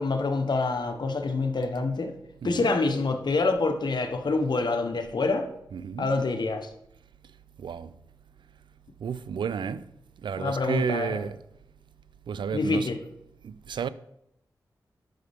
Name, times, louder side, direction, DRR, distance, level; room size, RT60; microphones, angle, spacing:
voice 1, 0.0-2.1 2.4-5.5 6.0-6.7 10.4-11.2 12.5-13.0, left 3 dB, 65° left, 1.0 m, -26 dB
voice 2, 2.4-2.7 5.7-6.1 7.6-7.9 9.0-9.9 10.2-11.4 12.3-12.9 13.4-13.9, right 7 dB, 80° right, 0.4 m, -32 dB
9.1 x 6.4 x 3.5 m
cardioid pair, 40°, 8 cm